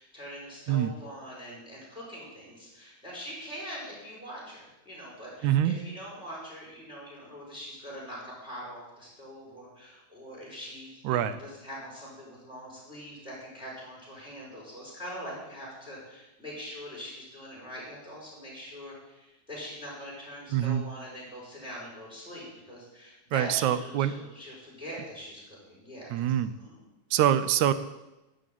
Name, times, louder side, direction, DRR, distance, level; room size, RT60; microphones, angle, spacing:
voice 1, 0.0-26.8, equal, ahead, -6 dB, 5.8 m, -43 dB
voice 2, 5.4-5.8 11.0-11.4 20.5-20.8 23.3-24.1 26.1-26.5 27.1-27.7, right 11 dB, 80° right, 13 dB, 2.0 m, -25 dB
12.0 x 6.5 x 9.2 m, 0.99 s
omnidirectional pair, 3.5 m